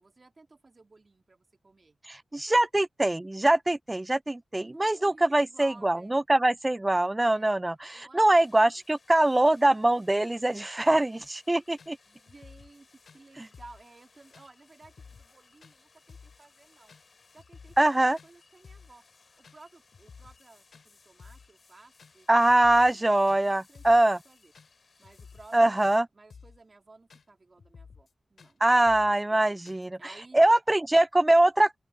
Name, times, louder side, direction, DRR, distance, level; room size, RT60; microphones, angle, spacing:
voice 1, 0.0-2.0 2.5-2.6 4.6-6.2 7.3-7.5 7.9-8.8 12.1-17.0 17.3-19.0 19.4-24.5 25.0-30.4, right 3 dB, 40° right, 2.6 m, -55 dB
voice 2, 2.1-12.0 13.4-13.5 17.8-18.2 22.3-24.2 25.5-26.1 28.6-30.0 30.3-31.8, right 1 dB, 20° right, 0.4 m, -23 dB
sound 1, 8.3-26.0, left 4 dB, 60° left, 6.4 m, -62 dB
sound 2, 11.2-11.3 11.8-11.9 12.3-12.8 13.1-13.2 13.5-13.8 14.3-14.5 14.8-15.3 15.6-15.8 16.1-16.4 16.9-17.0 17.4-17.9 18.2-18.3 18.6-19.0 19.4-19.7 19.9-20.5 20.7-20.9 21.2-21.5 22.0-22.1 22.5-23.0 23.3-23.4 23.7-24.1 24.5-24.7 25.0-25.6 25.8-26.0 26.3-26.6 27.1-27.2 27.6-28.1 28.4-28.5 28.9-29.2 29.7-29.9, left 5 dB, 80° left, 4.1 m, -52 dB
open air
wide cardioid pair, 75°, 0 cm